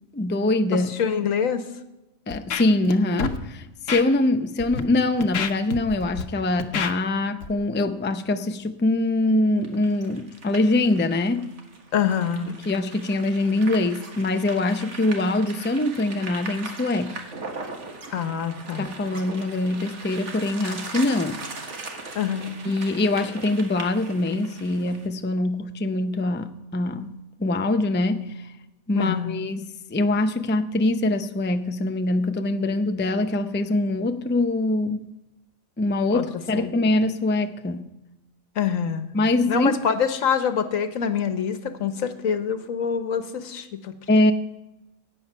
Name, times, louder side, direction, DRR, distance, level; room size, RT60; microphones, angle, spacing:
voice 1, 0.1-0.9 2.3-11.5 12.7-17.2 18.8-21.4 22.6-27.1 27.4-28.5 28.9-35.0 35.8-37.9 39.1-39.7 44.1-44.3, left 2 dB, 15° left, 8 dB, 0.3 m, -23 dB
voice 2, 0.7-1.6 11.9-12.5 18.1-18.9 22.1-22.5 28.9-29.4 36.1-36.3 36.5-36.7 38.6-39.1 39.5-43.9, left 7 dB, 90° left, 10 dB, 1.4 m, -25 dB
Scratching (performance technique), 2.3-2.9 3.2-3.4 3.9-4.0 4.6-4.8 5.2-6.2 6.6-6.9 7.4-7.5, left 6 dB, 75° left, 1.3 m, -28 dB
sound 1, 9.6-25.1, right 3 dB, 65° right, 1.8 m, -39 dB
16.5 x 8.8 x 5.6 m, 0.98 s
omnidirectional pair, 1.3 m